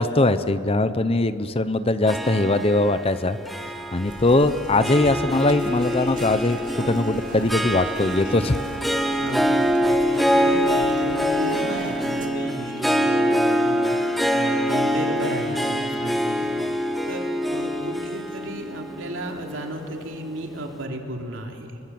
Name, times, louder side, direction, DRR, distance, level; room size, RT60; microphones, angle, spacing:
voice 1, 0.0-3.4 3.9-8.6, left 2 dB, 25° left, 12 dB, 0.7 m, -21 dB
Harp, 2.0-20.5, equal, ahead, 1.4 m, -25 dB
sound 1, 4.0-12.3, right 2 dB, 40° right, 2.1 m, -41 dB
sound 2, 5.1-15.7, left 1 dB, 50° left, 6.8 m, -44 dB
voice 2, 9.2-21.7, right 1 dB, 65° right, 2 dB, 3.3 m, -34 dB
27.5 x 23.0 x 7.7 m, 2.5 s
head